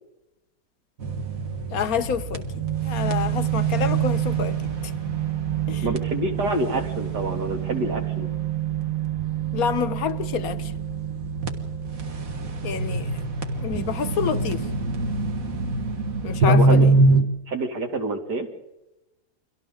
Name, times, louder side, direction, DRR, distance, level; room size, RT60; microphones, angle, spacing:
sound 1, 1.0-17.2, right 4 dB, 55° right, 2.1 m, -25 dB
voice 1, 1.7-4.9 5.7-5.9 9.5-10.7 12.6-13.2 13.5-14.7 16.2-17.0, left 7 dB, 65° left, 1.3 m, -28 dB
voice 2, 5.8-8.3 16.5-16.9 17.1-18.5, right 2 dB, 80° right, 3.1 m, -27 dB
30.0 x 23.5 x 3.8 m
omnidirectional pair, 1.7 m